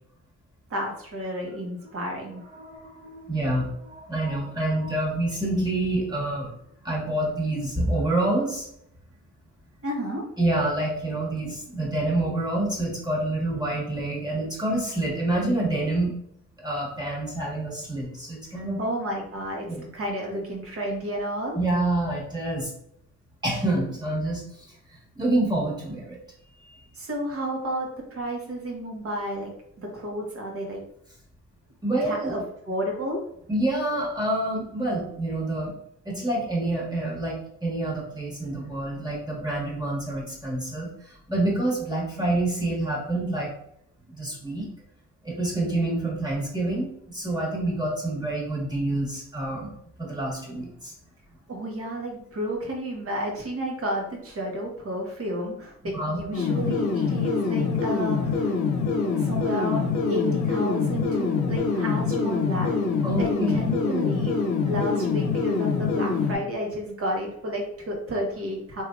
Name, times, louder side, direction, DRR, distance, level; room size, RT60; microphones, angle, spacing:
voice 1, 0.7-2.4 9.8-10.2 18.8-21.6 26.9-30.8 32.0-32.4 32.7-33.2 51.5-58.6 59.0-62.7 63.2-68.8, equal, 50° right, 0 dB, 1.2 m, -31 dB
voice 2, 2.5-6.5 6.8-8.7 10.4-16.2 16.6-18.8 19.7-19.8 21.5-22.7 23.4-26.2 26.6-26.9 31.8-32.3 33.5-35.7 36.0-43.5 44.1-44.7 45.2-49.7 50.0-50.9 55.8-56.2 63.0-63.6, right 1 dB, 15° right, -4 dB, 1.5 m, -27 dB
sound 1, 56.3-66.4, left 5 dB, 80° left, 0.7 m, -25 dB
3.4 x 2.7 x 2.4 m, 0.71 s
cardioid pair, 90°, 30 cm